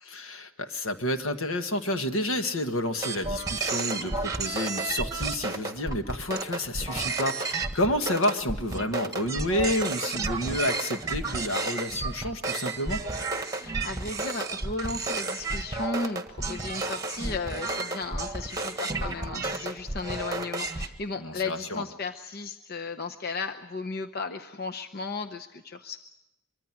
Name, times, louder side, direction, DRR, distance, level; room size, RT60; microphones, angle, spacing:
voice 1, 0.0-13.0 21.2-21.8, left 1 dB, 70° left, 7 dB, 1.7 m, -30 dB
sound 1, 3.0-20.9, right 3 dB, 15° right, 1.5 m, -32 dB
voice 2, 13.5-26.0, left 3 dB, 45° left, 6 dB, 0.8 m, -35 dB
24.0 x 24.0 x 6.0 m, 0.94 s
head